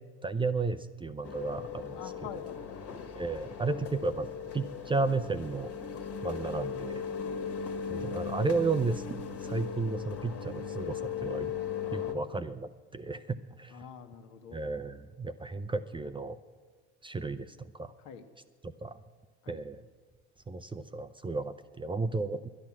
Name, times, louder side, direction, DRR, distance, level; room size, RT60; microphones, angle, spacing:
voice 1, 0.2-2.0 3.2-4.3 4.5-5.7 6.2-7.0 7.9-9.0 9.4-11.5 11.9-13.8 14.5-16.4 17.0-17.9 18.6-19.0 19.5-19.8 20.5-22.5, right 3 dB, 15° right, 10 dB, 0.5 m, -33 dB
sound 1, 1.2-12.1, left 6 dB, 45° left, 1.7 m, -38 dB
voice 2, 1.9-3.1 7.1-7.4 12.1-12.3 13.7-14.6 18.0-18.2 19.4-19.6, left 7 dB, 65° left, 7 dB, 1.4 m, -47 dB
11.0 x 10.5 x 7.3 m, 1.4 s
supercardioid pair, 80°, 32 cm